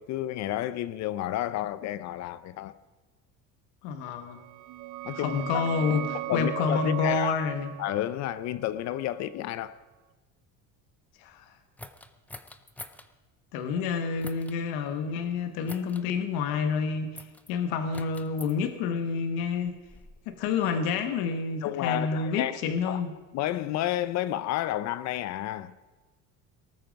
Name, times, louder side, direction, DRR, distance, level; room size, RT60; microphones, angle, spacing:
voice 1, 0.0-2.8 5.0-5.6 6.1-7.3 7.8-9.8 21.6-22.6 22.9-23.0 23.3-25.7, left 13 dB, 50° left, 0.6 m, -31 dB
voice 2, 3.8-4.4 5.1-7.7 11.2-11.5 13.5-19.7 20.3-23.1, left 5 dB, 85° left, 1.4 m, -29 dB
sound 1, 4.3-9.8, right 18 dB, 60° right, 0.5 m, -38 dB
sound 2, 11.8-13.1 14.2-14.6 15.7-16.1 17.2-17.5 17.9-18.5 19.4-20.9, left 2 dB, 5° left, 0.4 m, -46 dB
18.5 x 13.0 x 5.2 m
cardioid pair, 175°, 35 cm